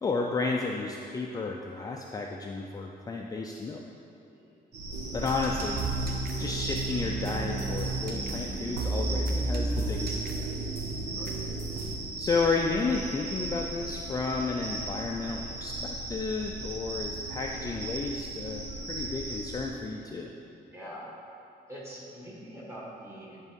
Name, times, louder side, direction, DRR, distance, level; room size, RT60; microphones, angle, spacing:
voice 1, 0.0-3.8 5.1-5.8 6.4-10.3 12.2-20.3, left 4 dB, 20° left, 0 dB, 0.4 m, -32 dB
sound 1, 4.7-19.7, right 2 dB, 90° right, 1.2 m, -37 dB
sound 2, 4.9-12.0, right 2 dB, 65° right, 0.8 m, -33 dB
voice 2, 20.7-21.1 21.7-23.5, equal, 15° right, -6 dB, 1.6 m, -44 dB
10.5 x 3.6 x 5.3 m, 2.8 s
cardioid pair, 165°, 17 cm